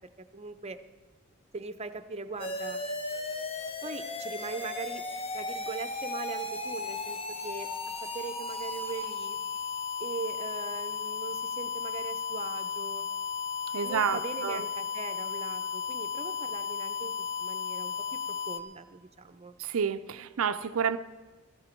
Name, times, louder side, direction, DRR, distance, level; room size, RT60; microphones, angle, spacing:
voice 1, 0.3-0.8 1.5-2.8 3.8-5.0 5.3-7.2 7.4-9.4 10.0-13.1 13.8-17.1 17.4-19.6, right 4 dB, 30° right, 10 dB, 0.7 m, -40 dB
sound 1, 2.4-18.6, left 5 dB, 25° left, 0.9 m, -35 dB
voice 2, 13.7-14.6 19.6-21.0, right 7 dB, 80° right, 10 dB, 0.5 m, -29 dB
16.5 x 14.5 x 4.5 m, 1.3 s
head